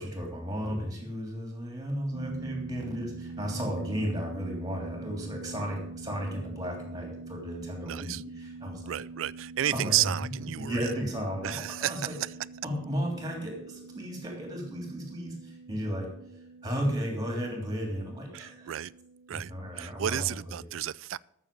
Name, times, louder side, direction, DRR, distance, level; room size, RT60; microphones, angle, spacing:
voice 1, 0.0-9.0 9.7-10.1 10.5-12.1 12.6-16.1 16.6-18.8 19.3-20.7, equal, 20° right, 3.0 m, -34 dB
sound 1, 2.1-20.5, right 3 dB, 70° right, 0.8 m, -44 dB
voice 2, 7.8-8.2 8.9-10.9 11.4-12.3 18.3-18.9 19.3-21.2, right 12 dB, 90° right, 0.4 m, -32 dB
14.0 x 6.7 x 6.9 m
head